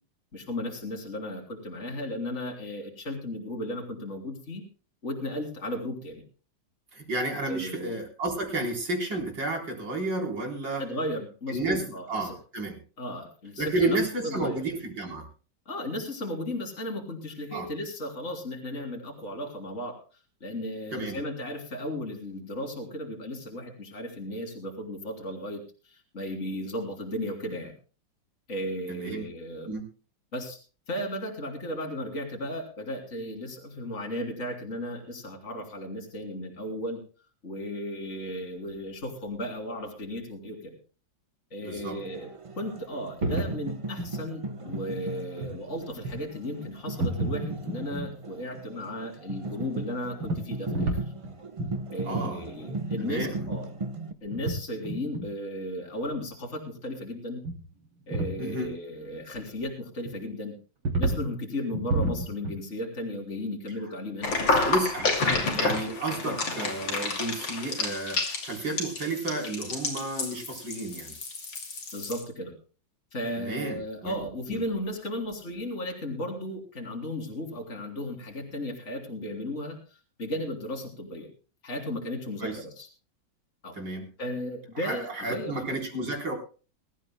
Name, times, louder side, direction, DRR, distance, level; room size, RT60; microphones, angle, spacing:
voice 1, 0.3-4.6 5.0-6.2 7.5-7.9 10.8-12.3 13.0-14.6 15.6-20.0 20.4-27.7 28.5-29.7 30.3-30.6 30.9-37.0 37.4-40.7 41.5-42.3 42.6-50.9 51.9-53.7 54.2-57.4 58.1-60.5 61.0-64.6 65.3-65.4 66.2-66.4 71.9-72.5 73.1-81.3 81.6-82.9 83.6-83.8 84.2-85.6, left 1 dB, 35° left, 1 dB, 3.4 m, -35 dB
voice 2, 6.9-10.8 11.5-12.8 13.6-15.3 17.5-17.7 20.9-21.2 28.9-29.3 29.7-29.9 41.6-42.0 52.1-52.4 53.0-53.5 58.4-58.8 64.6-71.1 73.4-74.1 74.5-74.6 82.4-82.6 83.7-84.1 84.8-86.3, right 2 dB, 65° right, 1 dB, 4.7 m, -31 dB
sound 1, 41.8-54.1, right 2 dB, 35° right, 0.5 m, -37 dB
sound 2, 43.2-43.6 44.0-44.1 44.7-44.8 45.3-45.6 46.0-46.3 46.6-46.7 47.0-48.1 50.2-51.3 51.6-51.8 52.1-52.3 52.6-52.8 53.1-53.2 53.3-53.4 54.3-54.6 54.8-55.3 57.4-57.6 57.9-58.4 60.1-60.2 60.9-61.2 61.7-62.6, right 2 dB, 90° right, 4.0 m, -30 dB
sound 3, 64.2-72.2, left 3 dB, 70° left, 3.4 m, -30 dB
22.5 x 14.0 x 2.2 m, 0.37 s
omnidirectional pair, 2.1 m